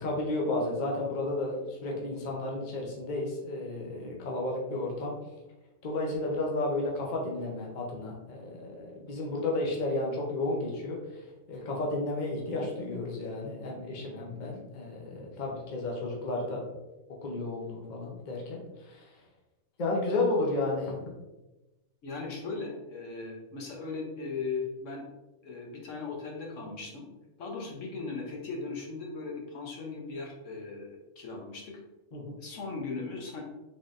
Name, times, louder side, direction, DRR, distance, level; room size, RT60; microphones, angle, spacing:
voice 1, 0.0-5.1 5.8-11.2 11.5-16.6 17.2-19.1 19.8-21.0 32.1-32.3, left 2 dB, 40° left, -1 dB, 0.8 m, -32 dB
voice 2, 22.0-25.0 25.4-27.1 27.4-31.8 32.4-33.4, left 4 dB, 70° left, 0 dB, 1.1 m, -38 dB
3.9 x 3.6 x 2.5 m, 1.0 s
omnidirectional pair, 1.4 m